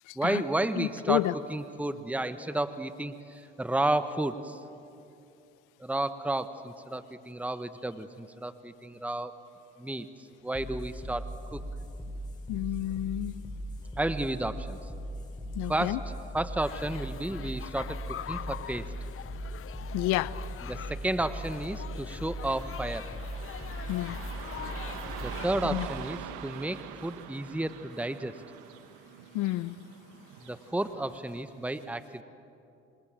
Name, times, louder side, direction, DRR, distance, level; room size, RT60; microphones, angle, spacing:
voice 1, 0.1-4.6 5.8-9.3 9.8-10.1 10.4-11.7 14.0-14.9 15.7-18.9 20.6-23.1 25.2-28.4 30.4-32.2, right 1 dB, 5° right, 11 dB, 1.2 m, -32 dB
voice 2, 0.8-1.3 12.5-13.4 15.6-16.0 19.9-20.3 23.9-24.2 25.7-25.9 29.3-29.8, left 17 dB, 80° left, 18 dB, 0.7 m, -30 dB
sound 1, 10.5-27.6, equal, 15° left, 7.1 m, -40 dB
sound 2, 16.6-25.5, left 10 dB, 45° left, 0.7 m, -43 dB
Car passing by / Traffic noise roadway noise, 22.4-31.4, right 10 dB, 85° right, 1.6 m, -45 dB
27.5 x 26.0 x 7.6 m, 2.6 s
supercardioid pair, 70°, 31 cm